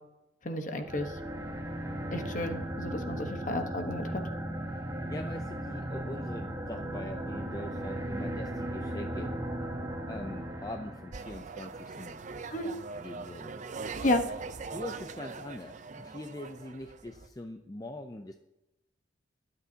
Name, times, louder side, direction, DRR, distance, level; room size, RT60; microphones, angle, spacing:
voice 1, 0.4-1.1 2.1-4.2 12.5-12.7 14.0-14.2, left 1 dB, 40° left, 6 dB, 1.1 m, -31 dB
sound 1, 0.8-11.3, right 1 dB, 20° right, 1.5 m, -36 dB
voice 2, 5.1-9.3 10.1-12.2 12.9-13.5 14.7-18.4, left 1 dB, 20° left, 5 dB, 0.5 m, -42 dB
sound 2, 11.1-17.3, right 4 dB, 40° right, 0.6 m, -41 dB
22.5 x 8.1 x 2.8 m, 0.92 s
head